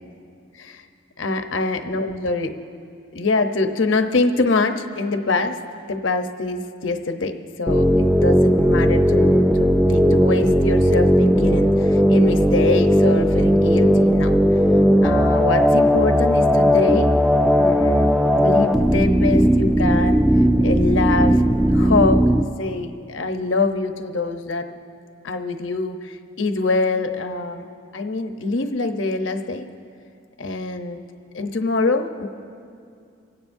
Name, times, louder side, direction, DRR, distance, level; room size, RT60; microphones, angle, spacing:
voice 1, 1.2-2.5 3.1-5.6 5.9-14.3 15.0-17.1 17.6-20.2 20.6-21.4 21.7-22.2 22.6-24.7 25.2-27.6 27.9-29.6 30.4-31.0 31.3-32.3, left 3 dB, 85° left, 6 dB, 0.9 m, -24 dB
sound 1, 7.7-22.4, equal, ahead, 0.3 m, -17 dB
25.5 x 17.0 x 2.7 m, 2.4 s
head